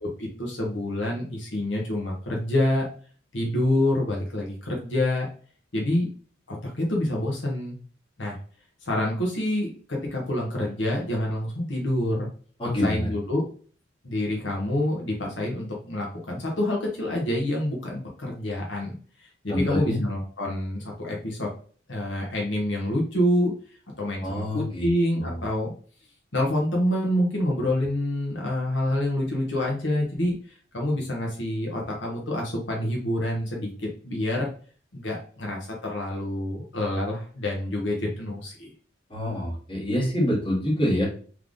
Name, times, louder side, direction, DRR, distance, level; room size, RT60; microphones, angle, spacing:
voice 1, 0.0-2.8 3.3-5.3 5.7-6.1 6.5-7.8 8.2-8.4 8.8-12.3 12.8-13.4 14.0-18.9 19.2-21.5 21.9-23.5 24.0-25.7 26.3-30.4 30.7-34.5 34.9-38.7, left 1 dB, 80° left, -1 dB, 1.2 m, -27 dB
voice 2, 12.6-13.1 19.5-20.0 24.2-24.9 25.1-25.4 39.1-41.1, left 1 dB, 30° left, -5 dB, 1.8 m, -26 dB
3.5 x 3.4 x 3.7 m, 0.43 s
head